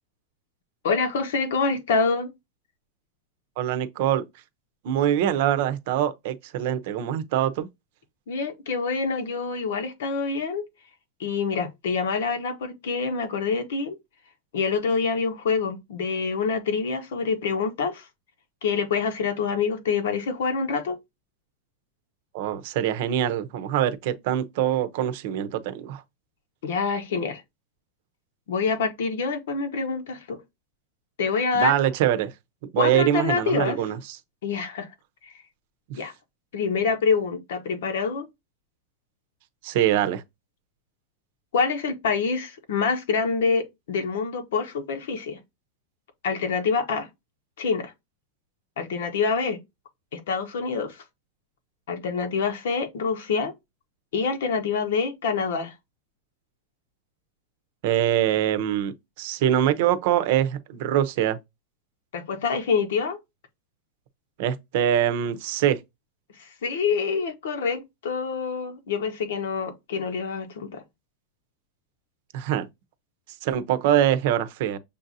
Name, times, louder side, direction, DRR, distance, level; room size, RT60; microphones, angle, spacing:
voice 1, 0.8-2.3 8.3-10.6 11.2-14.0 14.5-18.1 18.6-21.0 26.6-27.4 28.5-30.4 31.2-31.7 32.8-33.8 34.4-34.9 35.9-36.1 36.5-38.3 41.5-45.4 46.2-47.1 47.6-47.9 48.8-49.6 50.1-51.0 51.9-53.5 54.1-55.7 62.1-63.2 66.4-70.8, left 5 dB, 80° left, 1.2 m, -26 dB
voice 2, 3.6-4.2 4.8-7.7 22.3-26.0 31.5-32.3 32.7-34.2 35.9-36.0 39.6-40.2 57.8-61.4 64.4-65.8 72.3-72.7 73.4-74.8, right 11 dB, 55° right, 0.7 m, -24 dB
6.6 x 2.7 x 2.6 m
supercardioid pair, 155°, 0 cm